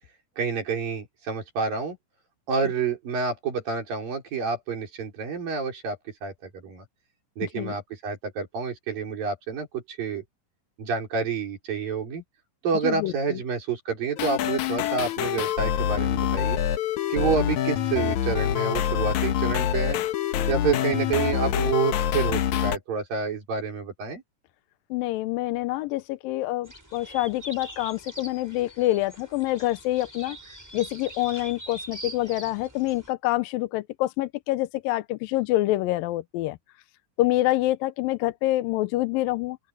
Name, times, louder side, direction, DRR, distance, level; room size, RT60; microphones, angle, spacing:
voice 1, 0.4-2.0 2.5-6.8 7.4-10.2 10.8-12.2 12.6-16.6 17.1-20.0 20.5-24.2, right 5 dB, 80° right, 6.6 m, -28 dB
voice 2, 7.4-7.7 12.8-13.4 17.2-17.3 24.9-30.4 30.7-36.6 37.2-39.6, left 16 dB, 85° left, 2.4 m, -26 dB
sound 1, 14.2-22.8, left 11 dB, 70° left, 2.2 m, -25 dB
sound 2, 26.6-33.1, right 1 dB, 5° right, 5.4 m, -43 dB
open air
omnidirectional pair, 3.9 m